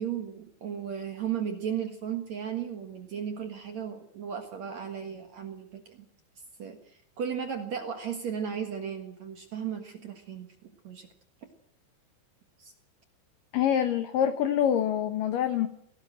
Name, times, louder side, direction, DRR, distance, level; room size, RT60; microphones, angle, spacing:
voice 1, 0.0-6.1 6.6-11.1 12.6-12.7, right 8 dB, 60° right, 6 dB, 1.9 m, -35 dB
voice 2, 13.5-15.7, left 9 dB, 70° left, 9 dB, 2.1 m, -25 dB
20.0 x 17.5 x 7.7 m, 0.67 s
omnidirectional pair, 5.4 m